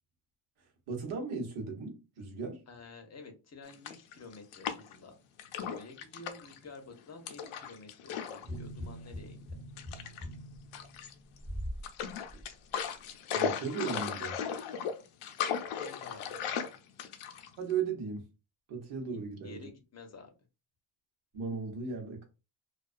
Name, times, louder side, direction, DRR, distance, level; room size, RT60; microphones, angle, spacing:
voice 1, 0.9-2.6 13.3-14.4 17.6-18.3 18.7-19.7 21.3-22.3, right 5 dB, 80° right, 1.0 m, -36 dB
voice 2, 2.7-5.1 5.6-9.4 15.7-16.6 19.4-20.3, left 3 dB, 35° left, 0.6 m, -50 dB
sound 1, 3.7-5.0 5.4-6.6 7.3-8.5 8.7-8.9 9.8-10.3 10.7-11.4 11.8-17.7, left 7 dB, 85° left, 0.6 m, -36 dB
sound 2, 8.4-11.8 12.3-12.4, equal, 5° right, 0.8 m, -42 dB
2.3 x 2.2 x 2.4 m
cardioid pair, 100°, 48 cm